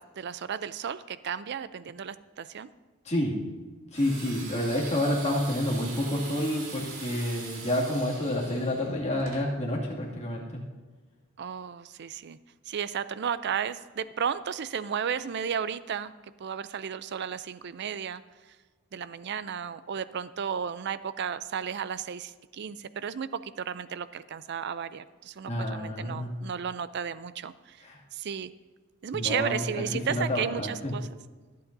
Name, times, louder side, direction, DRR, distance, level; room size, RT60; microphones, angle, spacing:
voice 1, 0.0-2.7 11.4-12.4 12.7-16.1 16.4-18.2 18.9-27.8 28.1-28.5 29.0-31.1, right 7 dB, 55° right, 15 dB, 0.4 m, -33 dB
voice 2, 3.9-10.6 25.5-26.4 27.8-28.0 29.1-30.9, left 1 dB, 35° left, -3 dB, 2.3 m, -29 dB
sound 1, 3.9-9.4, right 4 dB, 75° right, 2.4 m, -42 dB
24.5 x 8.5 x 2.7 m, 1.4 s
head